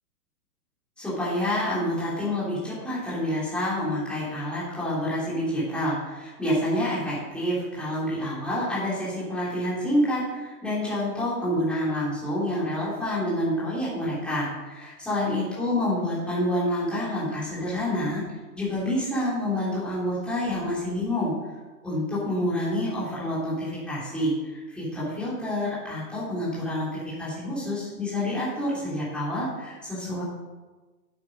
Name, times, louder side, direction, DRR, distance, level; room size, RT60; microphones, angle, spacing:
voice 1, 1.0-18.2 18.5-21.3 21.8-30.2, left 1 dB, ahead, -10 dB, 3.3 m, -28 dB
9.3 x 8.5 x 5.2 m, 1.2 s
hypercardioid pair, 165°, 47 cm